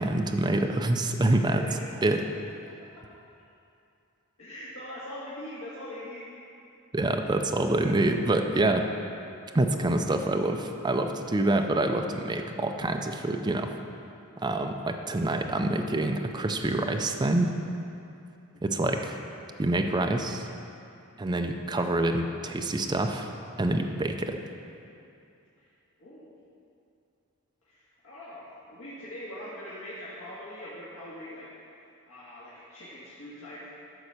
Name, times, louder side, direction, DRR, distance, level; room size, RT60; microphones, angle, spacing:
voice 1, 0.0-1.6 2.0-2.2 6.9-8.9 9.5-13.7 14.4-17.5 18.6-19.2 19.6-20.5 21.2-23.3 23.6-24.4, right 2 dB, 20° right, 4 dB, 0.5 m, -26 dB
voice 2, 4.4-6.2 18.5-18.8 25.6-25.7 26.0-26.3 27.6-31.5 31.7-33.7, left 1 dB, 70° left, -10 dB, 1.8 m, -42 dB
12.5 x 4.2 x 6.5 m, 2.7 s
head